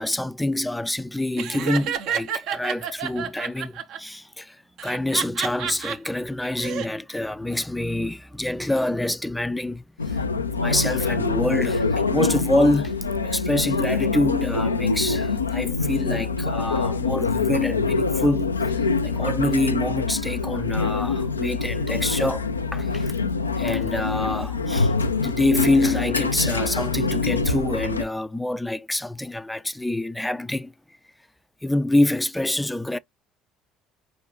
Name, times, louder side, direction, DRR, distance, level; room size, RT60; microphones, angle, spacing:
voice 1, 0.0-13.0 13.2-23.2 23.6-30.7 31.6-33.0, left 1 dB, 5° left, 0.4 m, -26 dB
Laughter, 1.4-4.0 4.8-6.0 6.4-6.9, right 8 dB, 60° right, 0.8 m, -29 dB
sound 1, 10.0-28.0, left 4 dB, 90° left, 0.4 m, -25 dB
4.8 x 3.4 x 2.9 m
figure-of-eight pair, 60°, 0 cm